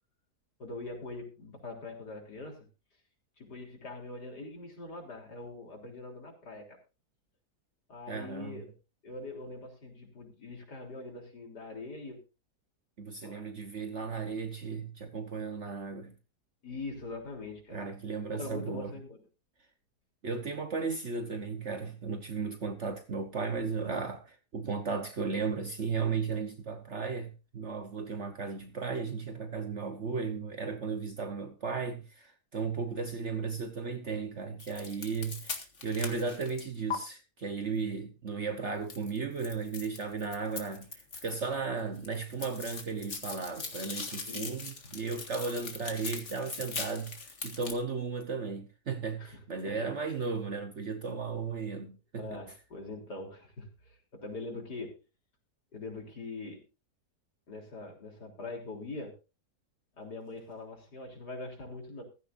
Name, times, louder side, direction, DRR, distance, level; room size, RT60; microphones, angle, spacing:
voice 1, 0.6-2.7 3.4-6.8 7.9-8.7 9.0-12.2 13.2-13.4 16.6-17.8 18.3-19.2 44.3-44.6 49.2-49.9 52.2-55.0 55.7-56.6 57.5-59.2 60.0-62.0, left 2 dB, 85° left, 4.2 m, -43 dB
voice 2, 8.1-8.7 13.0-16.2 17.7-18.9 20.2-52.4, right 5 dB, 50° right, 1.3 m, -35 dB
sound 1, 34.6-37.0 38.9-41.5 41.8-47.7, left 4 dB, 45° left, 2.1 m, -41 dB
15.0 x 14.5 x 2.6 m
omnidirectional pair, 1.7 m